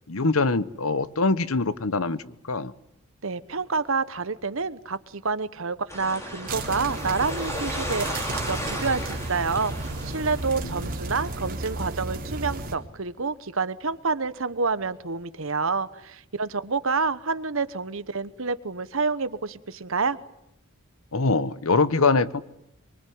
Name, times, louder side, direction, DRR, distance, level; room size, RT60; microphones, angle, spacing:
voice 1, 0.1-2.7 10.6-10.7 21.1-22.4, left 3 dB, 75° left, 16 dB, 1.0 m, -23 dB
voice 2, 3.2-20.2, right 4 dB, 65° right, 14 dB, 1.1 m, -28 dB
sound 1, 5.9-11.6, equal, 15° left, 5.6 m, -35 dB
sound 2, 6.5-12.7, right 2 dB, 45° right, 3.4 m, -33 dB
24.0 x 23.5 x 9.5 m, 0.83 s
head